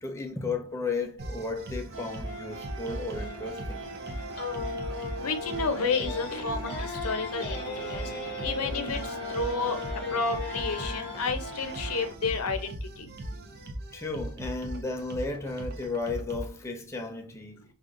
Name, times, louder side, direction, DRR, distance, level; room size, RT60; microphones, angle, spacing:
voice 1, 0.0-3.8 13.9-17.6, left 3 dB, 10° left, 0.4 m, -34 dB
sound 1, 1.2-16.5, right 1 dB, 45° right, 0.5 m, -39 dB
sound 2, 1.9-12.1, right 2 dB, 75° right, 1.0 m, -41 dB
sound 3, 4.3-11.3, left 4 dB, 45° left, 0.7 m, -37 dB
voice 2, 5.2-8.1 8.4-9.0 9.3-9.8 10.1-13.1, left 4 dB, 85° left, 0.6 m, -31 dB
5.0 x 2.4 x 2.5 m
head